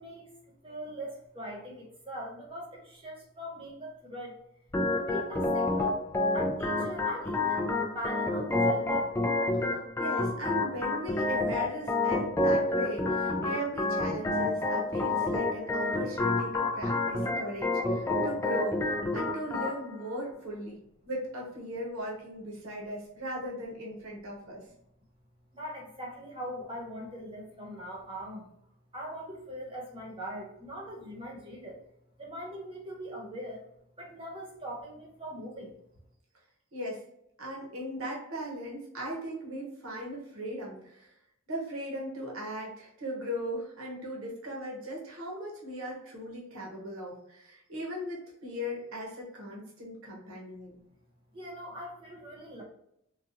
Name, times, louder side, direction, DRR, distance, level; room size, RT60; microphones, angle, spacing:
voice 1, 0.0-4.4 4.9-6.0 6.3-9.1 25.5-28.5 28.9-31.8 32.2-33.6 34.0-35.8 51.3-52.6, equal, 25° right, -2 dB, 0.9 m, -41 dB
Organ, 4.7-19.7, left 2 dB, 15° left, 0.3 m, -29 dB
voice 2, 10.0-24.6 36.7-37.0 37.4-41.1 41.5-50.7, equal, 75° right, -2 dB, 0.9 m, -38 dB
3.9 x 2.3 x 2.5 m, 0.77 s
head